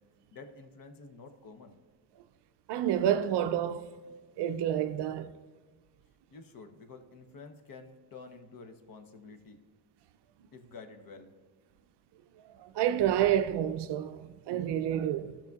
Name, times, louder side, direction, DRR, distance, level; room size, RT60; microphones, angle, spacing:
voice 1, 0.3-1.8 6.3-9.6 10.5-11.3, left 4 dB, 45° left, 0.9 m, -49 dB
voice 2, 2.7-3.9 4.4-5.3 12.4-15.4, right 10 dB, 55° right, 0.5 m, -29 dB
13.0 x 5.9 x 2.3 m
cardioid pair, 85°, 49 cm